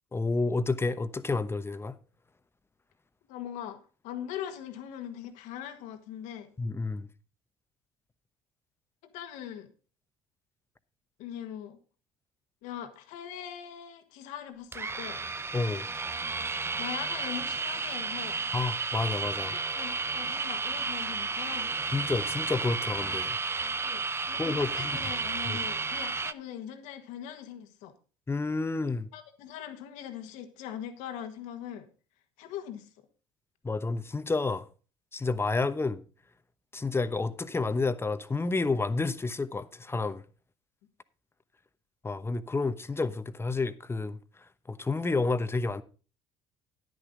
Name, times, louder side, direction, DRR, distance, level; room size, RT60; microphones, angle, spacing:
voice 1, 0.1-2.0 6.6-7.1 15.5-15.9 18.5-19.5 21.9-23.4 24.4-25.0 25.5-25.6 28.3-29.1 33.6-34.7 35.1-36.0 36.7-40.2 42.0-44.2 44.7-45.8, left 3 dB, 20° left, 1.0 m, -30 dB
voice 2, 3.3-3.8 4.0-6.5 9.0-9.7 11.2-11.8 12.6-15.2 16.8-18.4 19.4-21.7 23.8-27.9 29.1-31.9 32.4-32.9, left 10 dB, 70° left, 1.6 m, -41 dB
sound 1, 14.7-26.3, right 4 dB, 20° right, 0.6 m, -32 dB
10.5 x 10.0 x 3.8 m
hypercardioid pair, 65°, 13 cm